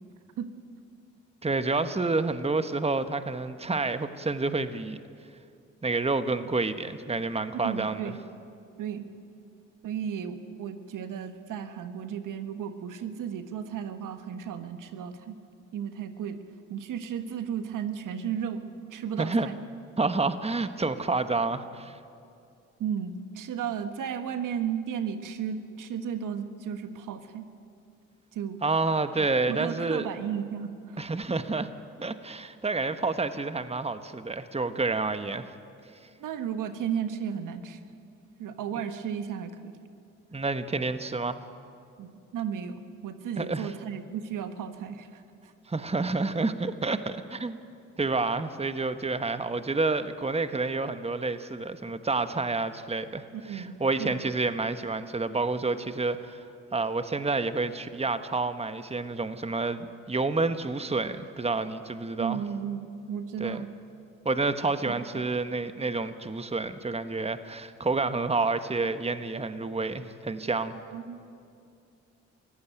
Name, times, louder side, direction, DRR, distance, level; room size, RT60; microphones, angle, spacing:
voice 1, 1.4-5.0 5.8-8.1 19.2-19.5 20.0-22.0 28.6-30.1 31.0-31.7 32.0-35.5 40.3-41.4 43.4-43.7 45.7-47.6 48.0-56.5 56.7-62.4 63.4-63.6 64.2-70.7, right 3 dB, 20° right, 10 dB, 1.3 m, -29 dB
voice 2, 7.6-8.2 8.8-9.0 9.8-15.4 15.7-16.4 16.7-18.6 18.9-19.6 22.8-27.4 28.3-28.6 29.5-31.0 36.2-37.8 38.4-39.7 42.0-45.2 53.4-53.7 54.0-54.3 62.2-63.7 64.8-65.2 70.9-71.2, right 8 dB, 70° right, 9 dB, 1.5 m, -34 dB
23.0 x 15.5 x 9.2 m, 2.4 s
hypercardioid pair, 45°, 33 cm